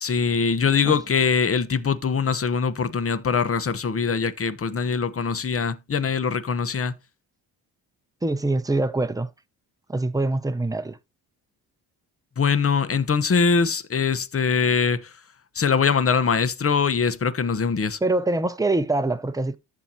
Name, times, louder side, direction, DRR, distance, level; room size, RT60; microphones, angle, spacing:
voice 1, 0.0-6.9 12.4-15.1 15.5-18.0, left 5 dB, 30° left, 1.0 m, -22 dB
voice 2, 8.2-9.3 9.9-11.0 18.0-19.6, right 2 dB, 10° right, 0.9 m, -24 dB
14.0 x 4.8 x 2.8 m
supercardioid pair, 70°, 45 cm